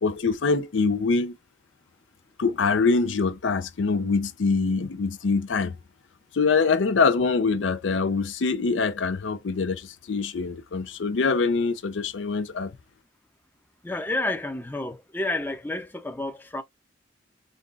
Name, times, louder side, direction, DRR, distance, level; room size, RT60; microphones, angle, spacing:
voice 1, 0.0-1.4 2.4-5.7 6.3-12.7, left 4 dB, 85° left, 0.5 m, -24 dB
voice 2, 13.8-16.6, left 2 dB, 10° left, 0.5 m, -30 dB
5.2 x 2.3 x 2.4 m
head